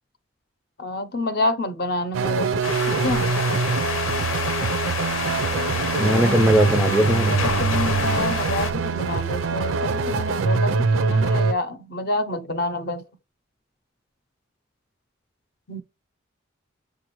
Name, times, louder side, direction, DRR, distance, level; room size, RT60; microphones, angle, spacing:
voice 1, 0.8-3.3 7.3-13.0 15.7-15.8, left 2 dB, 50° left, 0.6 m, -28 dB
sound 1, 2.1-11.5, right 4 dB, 70° right, 0.5 m, -24 dB
sound 2, 2.6-8.7, left 5 dB, 85° left, 0.7 m, -28 dB
voice 2, 6.0-7.4, equal, 5° right, 0.3 m, -19 dB
6.6 x 2.5 x 2.9 m
head